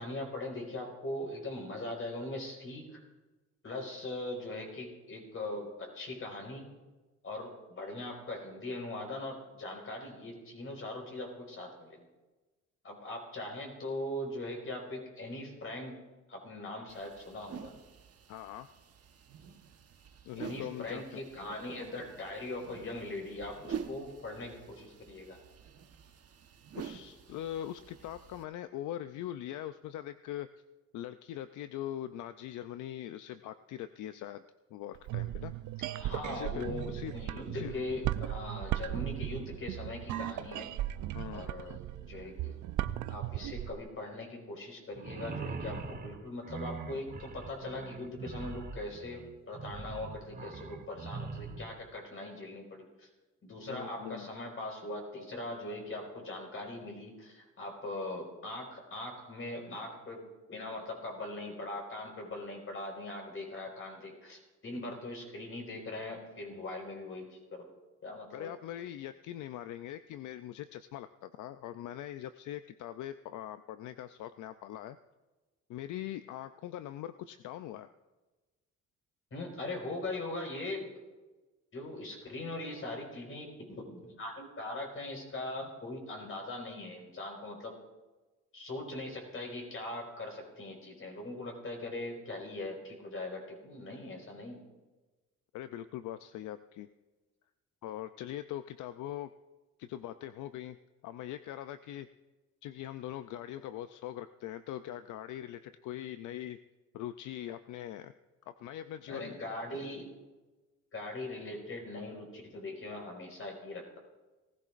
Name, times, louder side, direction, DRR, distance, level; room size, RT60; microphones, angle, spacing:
voice 1, 0.0-3.0 3.6-6.7 7.2-12.1 12.8-15.9 16.3-17.7 20.4-25.4 36.0-40.7 41.3-41.8 42.1-42.6 43.1-53.1 53.4-60.2 60.5-67.3 67.5-67.7 68.0-68.5 79.3-80.9 81.7-87.7 88.5-94.6 109.1-110.0 110.9-114.0, left 2 dB, 45° left, 1 dB, 4.8 m, -41 dB
sound 1, 16.9-28.4, right 7 dB, 50° right, 1.2 m, -47 dB
voice 2, 18.3-18.7 20.2-21.2 26.7-30.5 30.9-34.4 34.7-35.5 36.3-37.1 37.5-37.7 41.1-41.8 53.7-54.3 68.3-75.0 75.7-77.9 95.5-96.9 97.8-99.3 99.8-100.8 101.0-102.1 102.6-106.6 106.9-108.1 108.5-109.4, left 12 dB, 80° left, 11 dB, 0.5 m, -42 dB
sound 2, 34.9-43.8, right 13 dB, 75° right, 0.5 m, -37 dB
sound 3, 44.9-51.8, right 4 dB, 30° right, 1.4 m, -42 dB
19.0 x 15.0 x 2.5 m, 1.2 s
cardioid pair, 90°, 30 cm